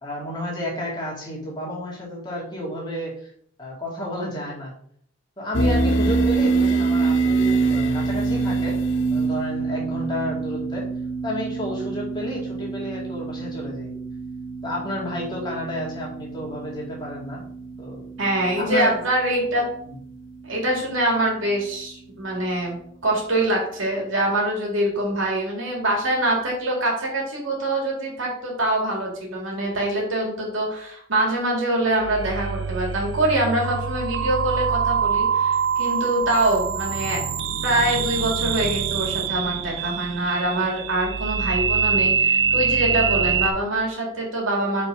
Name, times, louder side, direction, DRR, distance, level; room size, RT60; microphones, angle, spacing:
voice 1, 0.0-3.1 3.6-4.7 5.4-8.7 9.1-10.8 11.2-13.9 14.6-17.4 17.8-18.0 18.6-19.0, equal, 20° left, -5 dB, 2.4 m, -31 dB
sound 1, 5.5-20.6, right 3 dB, 65° left, 0.6 m, -26 dB
voice 2, 18.2-19.7 20.4-22.7 23.0-37.2 37.6-44.9, right 1 dB, 80° right, -1 dB, 2.5 m, -24 dB
sound 2, 31.9-43.5, right 6 dB, 60° right, 0.5 m, -24 dB
5.4 x 4.6 x 4.9 m, 0.63 s
head